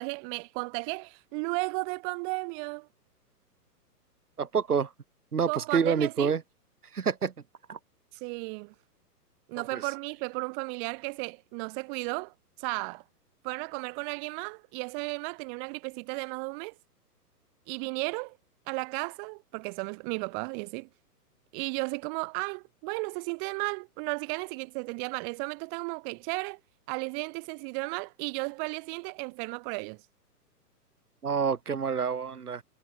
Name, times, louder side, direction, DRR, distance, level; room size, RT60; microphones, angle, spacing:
voice 1, 0.0-2.9 5.5-6.3 8.1-8.7 9.5-13.0 13.4-16.8 17.7-18.4 18.7-20.9 21.5-26.6 26.9-30.0, right 38 dB, 30° right, 5.2 m, -34 dB
voice 2, 4.4-4.9 5.3-6.4 6.9-7.3 7.7-7.8 9.6-9.8 31.2-32.6, right 6 dB, 65° right, 6.4 m, -28 dB
figure-of-eight pair, 120°, 48 cm